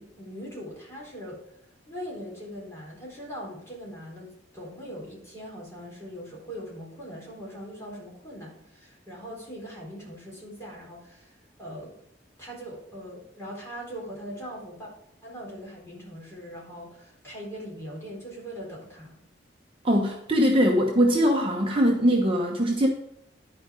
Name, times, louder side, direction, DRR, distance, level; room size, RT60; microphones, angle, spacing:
voice 1, 0.0-1.4 1.9-11.9 12.4-14.9 15.2-19.2, equal, 15° left, -4 dB, 4.1 m, -41 dB
voice 2, 19.8-22.9, equal, 30° right, 0 dB, 1.0 m, -22 dB
11.5 x 5.0 x 5.1 m, 0.80 s
head